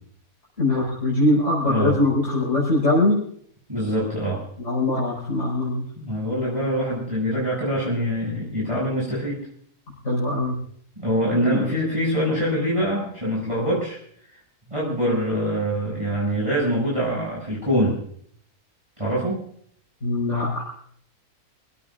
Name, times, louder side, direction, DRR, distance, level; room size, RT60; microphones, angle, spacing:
voice 1, 0.6-3.2 4.6-5.8 10.0-10.6 11.5-11.7 20.0-20.8, left 2 dB, 50° left, -6 dB, 5.4 m, -22 dB
voice 2, 1.6-1.9 3.7-4.4 6.0-9.4 11.0-14.0 14.7-18.0 19.0-19.4, equal, 20° right, -5 dB, 6.7 m, -24 dB
27.5 x 16.5 x 2.5 m, 0.63 s
omnidirectional pair, 1.6 m